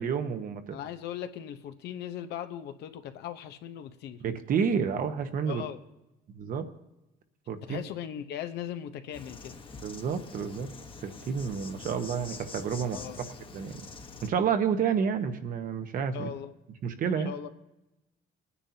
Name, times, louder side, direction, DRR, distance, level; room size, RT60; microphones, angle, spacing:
voice 1, 0.0-0.8 4.2-5.6 6.3-6.7 7.5-7.8 9.8-10.7 11.0-13.0 13.5-13.7 14.2-16.3 16.8-17.3, right 7 dB, 55° right, 8 dB, 1.1 m, -30 dB
voice 2, 0.7-4.2 5.4-5.8 7.7-9.6 12.9-13.2 16.1-16.5 17.2-17.5, left 10 dB, 80° left, 9 dB, 0.9 m, -38 dB
Insect, 9.1-14.3, left 4 dB, 30° left, 1.1 m, -45 dB
21.0 x 9.8 x 2.8 m, 0.94 s
cardioid pair, 110°, 17 cm